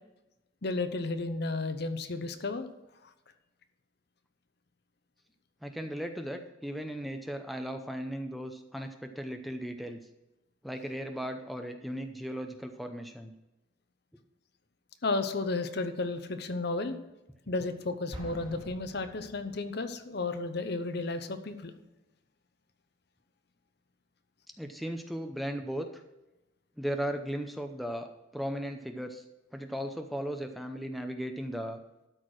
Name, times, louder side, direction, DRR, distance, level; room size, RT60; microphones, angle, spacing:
voice 1, 0.6-2.7 15.0-17.0 17.5-21.7, left 3 dB, 55° left, 9 dB, 0.8 m, -33 dB
voice 2, 5.6-10.0 10.6-13.3 24.6-26.0 26.8-29.2 29.5-31.8, equal, ahead, 5 dB, 0.6 m, -36 dB
Explosion, 18.1-19.9, equal, 25° right, 1.9 m, -46 dB
12.5 x 4.6 x 6.3 m, 0.97 s
head